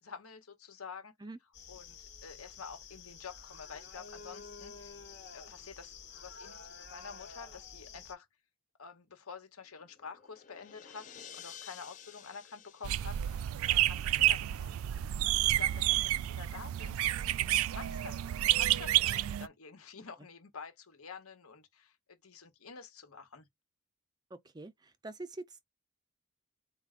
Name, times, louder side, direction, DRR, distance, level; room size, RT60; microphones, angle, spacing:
voice 1, 0.0-1.1 1.7-4.9 5.3-8.3 8.8-14.8 15.2-23.5, left 5 dB, 85° left, 1.1 m, -49 dB
sound 1, 1.5-8.1, left 5 dB, 55° left, 0.9 m, -50 dB
sound 2, 9.7-14.3, left 9 dB, 35° left, 0.4 m, -53 dB
sound 3, 12.8-19.5, right 13 dB, 80° right, 0.3 m, -30 dB
voice 2, 24.5-25.6, right 2 dB, 20° right, 0.5 m, -45 dB
4.2 x 2.2 x 3.6 m
head